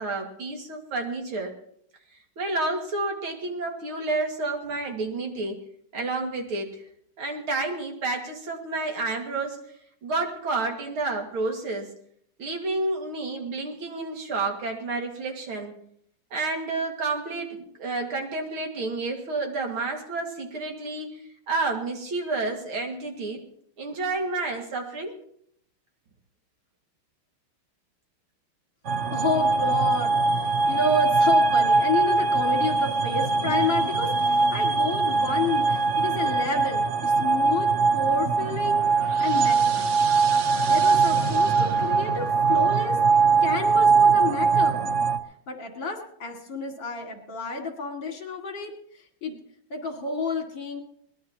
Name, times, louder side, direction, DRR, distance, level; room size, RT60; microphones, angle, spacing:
voice 1, 0.0-1.5 2.4-5.7 5.9-6.8 7.2-9.6 10.0-11.9 12.4-15.7 16.3-21.1 21.5-23.4 23.8-25.2, right 3 dB, 75° right, 2 dB, 2.9 m, -30 dB
sound 1, 28.9-45.2, right 4 dB, 60° right, 0.8 m, -22 dB
voice 2, 29.1-37.7 37.9-40.0 40.7-43.0 43.4-44.8 45.5-48.7 49.2-49.4 49.7-50.8, left 3 dB, 60° left, 2 dB, 3.0 m, -30 dB
22.0 x 19.5 x 2.9 m, 0.69 s
omnidirectional pair, 2.3 m